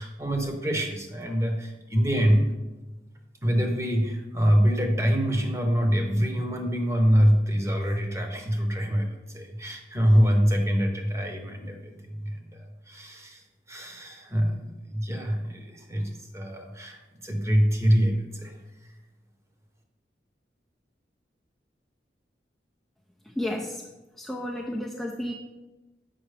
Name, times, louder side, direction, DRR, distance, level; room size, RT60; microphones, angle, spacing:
voice 1, 0.0-2.5 3.4-13.4 13.7-18.6 18.8-18.9, equal, 15° right, 3 dB, 0.9 m, -25 dB
voice 2, 23.2-23.9 24.1-25.3, left 1 dB, ahead, -2 dB, 0.4 m, -32 dB
7.7 x 5.7 x 3.3 m, 1.1 s
head